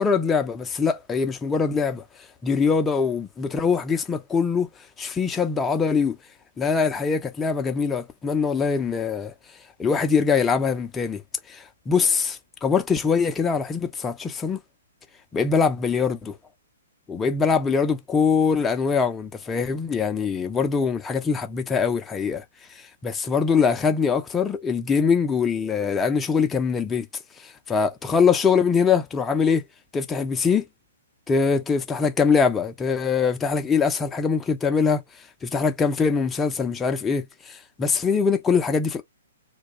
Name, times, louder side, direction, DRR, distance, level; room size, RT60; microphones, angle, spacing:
voice 1, 0.0-2.0 2.4-4.7 5.0-6.2 6.6-9.3 9.8-11.2 11.5-14.6 15.3-16.4 17.1-22.4 22.8-27.1 27.4-29.6 29.9-30.6 31.3-35.0 35.4-39.0, left 5 dB, 15° left, 0.4 m, -23 dB
2.2 x 2.1 x 2.8 m
hypercardioid pair, 125°, 0 cm